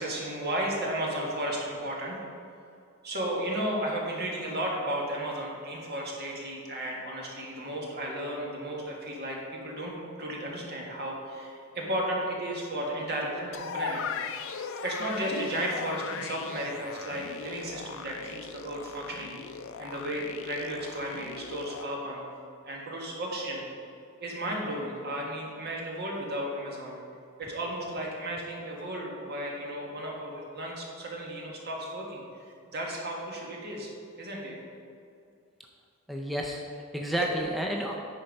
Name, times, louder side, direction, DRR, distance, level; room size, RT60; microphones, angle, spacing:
voice 1, 0.0-2.2 3.0-14.0 14.3-19.3 19.8-22.2 22.7-23.6 24.2-27.0 27.4-32.2 32.7-33.9 34.2-34.5 37.0-37.2, right 1 dB, 50° right, -2 dB, 1.7 m, -34 dB
sound 1, 13.5-21.8, left 6 dB, 65° left, 0.5 m, -38 dB
voice 2, 36.1-38.0, equal, ahead, 0 dB, 0.5 m, -31 dB
10.5 x 4.5 x 5.3 m, 2.4 s
head